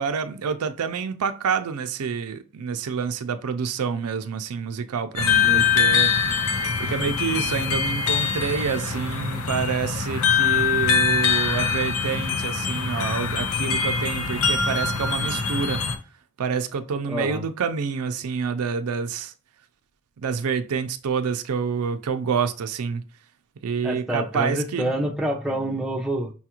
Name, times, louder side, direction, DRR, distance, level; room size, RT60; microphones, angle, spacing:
voice 1, 0.0-6.1 6.8-15.8 16.4-19.3 20.2-23.0 23.6-24.9, right 6 dB, 85° right, 0.4 m, -27 dB
sound 1, 5.2-16.0, left 6 dB, 70° left, 0.6 m, -23 dB
voice 2, 17.1-17.4 23.8-26.3, right 1 dB, 5° right, 0.5 m, -27 dB
5.6 x 2.4 x 2.9 m
head